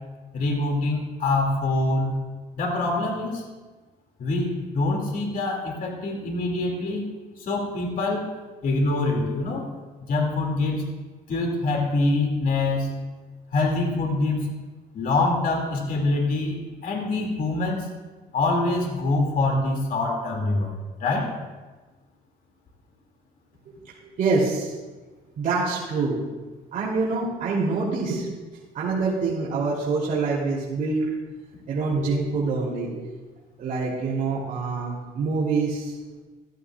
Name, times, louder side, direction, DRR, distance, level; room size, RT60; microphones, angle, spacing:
voice 1, 0.3-2.2 2.5-3.4 4.2-7.0 7.4-8.3 8.6-9.7 10.1-10.9 11.3-12.9 13.5-14.5 14.9-17.9 18.3-20.7 21.0-21.4, left 2 dB, 55° left, 1 dB, 2.5 m, -25 dB
voice 2, 24.0-24.7 25.4-26.2 26.7-28.3 28.7-31.1 31.7-33.0 33.6-35.9, right 4 dB, 50° right, -8 dB, 3.1 m, -25 dB
15.0 x 14.0 x 2.4 m, 1.3 s
cardioid pair, 110°, 17 cm